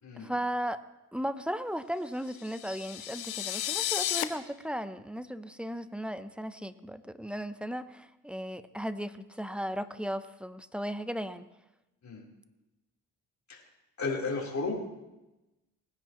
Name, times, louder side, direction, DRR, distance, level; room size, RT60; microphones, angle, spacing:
voice 1, 0.1-0.8 1.1-11.5, equal, 5° right, 12 dB, 0.9 m, -36 dB
sound 1, 2.3-4.2, left 12 dB, 75° left, 0.8 m, -33 dB
voice 2, 14.0-14.7, left 3 dB, 50° left, -1 dB, 4.3 m, -33 dB
19.5 x 10.5 x 3.2 m, 0.98 s
supercardioid pair, 50°, 36 cm